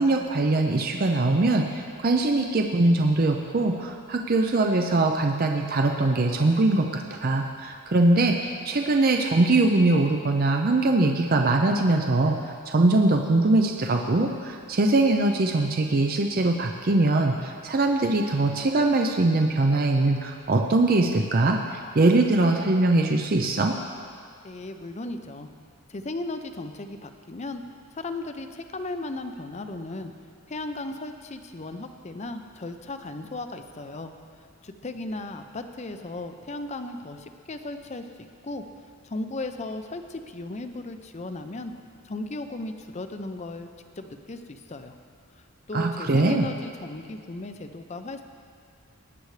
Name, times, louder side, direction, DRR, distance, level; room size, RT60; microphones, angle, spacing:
voice 1, 0.0-12.4 12.7-23.7 45.7-46.5, right 2 dB, 40° right, 3 dB, 0.6 m, -22 dB
voice 2, 24.4-25.5 25.9-27.6 27.9-30.1 30.5-34.1 34.6-38.6 39.0-41.7 42.0-43.7 44.0-44.9 45.7-48.2, left 2 dB, 30° left, 7 dB, 0.6 m, -36 dB
19.5 x 9.5 x 3.3 m, 2.2 s
head